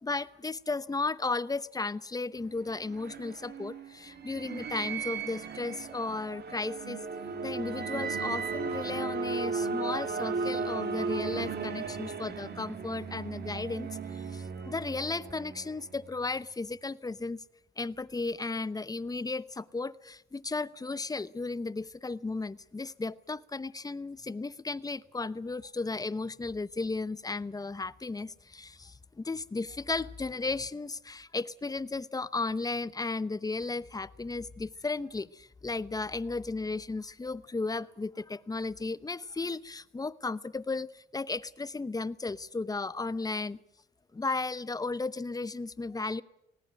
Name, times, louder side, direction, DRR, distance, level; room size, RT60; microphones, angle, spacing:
voice 1, 0.0-7.0 7.4-17.4 17.8-43.6 44.1-46.2, left 3 dB, 20° left, 17 dB, 0.8 m, -35 dB
sound 1, 2.4-16.1, right 5 dB, 55° right, 2.7 m, -36 dB
19.0 x 18.5 x 9.0 m, 0.80 s
cardioid pair, 90°, 20 cm